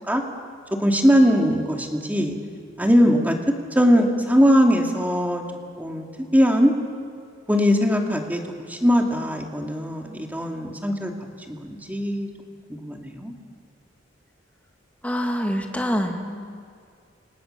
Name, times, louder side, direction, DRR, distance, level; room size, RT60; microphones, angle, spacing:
voice 1, 0.8-2.4 2.8-5.4 5.8-6.1 6.3-6.7 7.5-8.4 8.7-11.1 11.5-12.3 12.7-13.3, equal, 10° right, 1 dB, 2.5 m, -20 dB
voice 2, 15.0-16.6, equal, 10° left, 3 dB, 2.2 m, -26 dB
29.5 x 26.0 x 6.7 m, 2.2 s
head